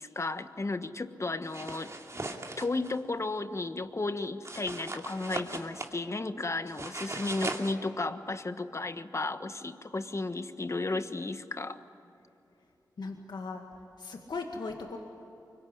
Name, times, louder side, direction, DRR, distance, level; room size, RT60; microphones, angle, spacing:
voice 1, 0.0-11.8, left 3 dB, 40° left, 10 dB, 1.3 m, -34 dB
sound 1, 1.4-2.9 4.4-5.9 6.7-7.7, right 2 dB, 40° right, 2.6 m, -39 dB
voice 2, 13.0-13.6 14.0-15.0, left 3 dB, 75° left, 3 dB, 2.0 m, -38 dB
25.0 x 23.0 x 9.8 m, 2.8 s
cardioid pair, 55°, 8 cm